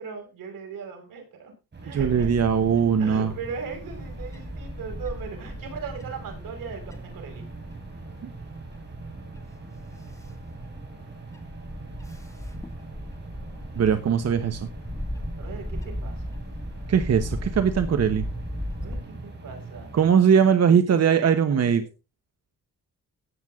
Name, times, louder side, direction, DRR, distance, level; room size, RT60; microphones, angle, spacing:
voice 1, 0.0-1.5 1.8-2.3 3.0-7.4 15.3-16.4 18.8-19.9 20.7-21.9, right 5 dB, 85° right, 3 dB, 6.1 m, -38 dB
sound 1, 1.7-20.1, right 3 dB, 35° right, 4.1 m, -41 dB
voice 2, 1.9-3.3 8.2-8.3 13.8-14.7 16.9-18.2 19.9-21.8, right 7 dB, 50° right, 9 dB, 1.1 m, -20 dB
Bird / Wind, 2.0-19.0, left 1 dB, 10° left, 1.9 m, -38 dB
14.0 x 9.2 x 3.7 m, 0.29 s
cardioid pair, 120°, 32 cm